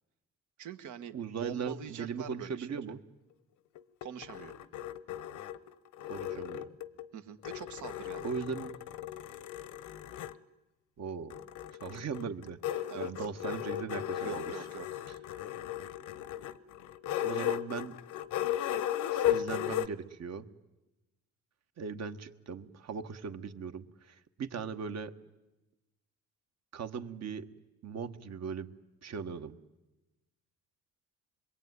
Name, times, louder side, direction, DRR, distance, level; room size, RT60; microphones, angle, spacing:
voice 1, 0.6-2.7 4.0-4.5 7.1-8.3 12.9-13.1 14.2-15.1, right 9 dB, 80° right, 8 dB, 1.8 m, -44 dB
voice 2, 1.1-3.0 6.1-6.7 8.2-8.7 11.0-11.4 11.8-14.5 17.2-18.0 19.1-20.5 21.8-25.1 26.7-27.5 27.8-28.7 29.0-29.6, right 6 dB, 60° right, 9 dB, 1.6 m, -39 dB
sound 1, 3.8-7.1 7.4-10.4 11.3-19.9, left 12 dB, 85° left, 1.0 m, -36 dB
26.5 x 22.0 x 9.6 m, 1.0 s
cardioid pair, 90°, 30 cm